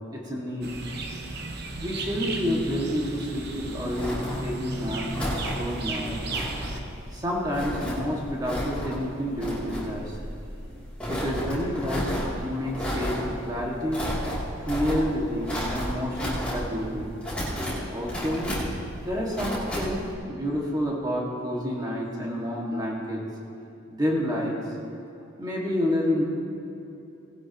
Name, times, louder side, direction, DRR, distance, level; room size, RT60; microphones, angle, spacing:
voice 1, 0.1-0.8 1.8-6.2 7.1-10.2 11.0-12.1 12.4-14.1 14.6-17.1 17.9-18.5 19.0-23.2 23.9-24.6 25.4-26.2, equal, 20° right, -3 dB, 1.9 m, -29 dB
sound 1, 0.6-6.8, right 2 dB, 50° right, 1.0 m, -34 dB
sound 2, 3.4-20.1, equal, 5° left, 2.9 m, -33 dB
18.5 x 12.0 x 3.0 m, 2.9 s
head